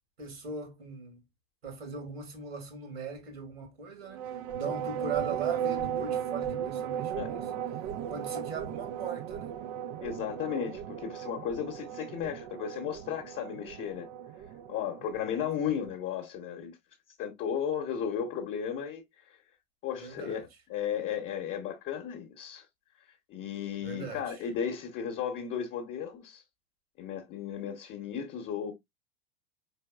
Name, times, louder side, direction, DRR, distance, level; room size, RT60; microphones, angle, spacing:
voice 1, 0.2-1.2 1.6-7.5 8.1-9.5 15.6-15.8 20.0-20.5 23.8-24.3, right 5 dB, 65° right, 1.9 m, -39 dB
sound 1, 4.1-16.0, right 9 dB, 35° right, 0.4 m, -36 dB
voice 2, 10.0-14.1 14.7-16.7 17.2-19.4 19.8-22.6 23.3-26.4 27.0-28.7, left 8 dB, 35° left, 1.0 m, -35 dB
4.5 x 3.4 x 2.2 m
figure-of-eight pair, 85°, 32 cm